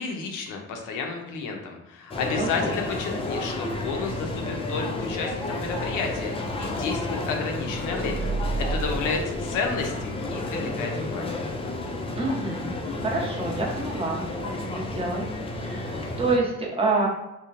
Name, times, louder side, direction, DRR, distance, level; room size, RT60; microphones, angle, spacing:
voice 1, 0.0-11.4, left 4 dB, 85° left, 2 dB, 0.6 m, -31 dB
sound 1, 2.1-16.4, left 2 dB, 20° left, 0.4 m, -31 dB
voice 2, 2.4-2.7 12.2-12.7 13.0-15.2 15.6-17.1, right 3 dB, 20° right, -3 dB, 0.8 m, -27 dB
sound 2, 7.6-10.2, right 3 dB, 60° right, 0.7 m, -32 dB
2.9 x 2.1 x 2.4 m, 0.94 s
cardioid pair, 90°, 30 cm